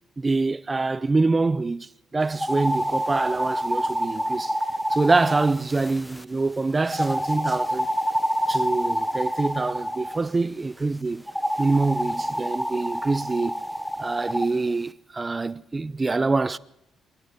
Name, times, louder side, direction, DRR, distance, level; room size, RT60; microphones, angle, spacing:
voice 1, 0.2-4.6 4.9-7.9 8.5-11.2 11.6-13.6 14.0-16.6, right 3 dB, 25° right, 0.7 m, -25 dB
sound 1, 2.3-6.2 6.9-10.2 11.3-14.5, equal, ahead, 1.2 m, -27 dB
26.5 x 12.0 x 8.3 m
cardioid pair, 90°, 0 cm